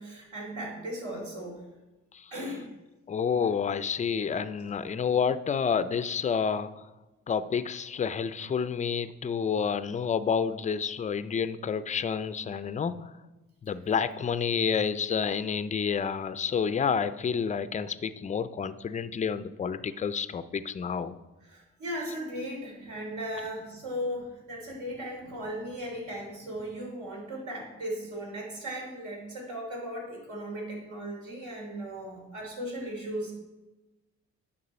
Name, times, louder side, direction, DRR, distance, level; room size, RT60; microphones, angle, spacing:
voice 1, 0.0-1.6 2.3-2.7 21.4-33.3, equal, 70° right, -2 dB, 3.1 m, -37 dB
voice 2, 3.1-6.7 7.3-13.1 13.6-21.2, left 6 dB, 25° left, 13 dB, 0.4 m, -29 dB
9.4 x 5.5 x 4.2 m, 1.1 s
cardioid pair, 90°, 30 cm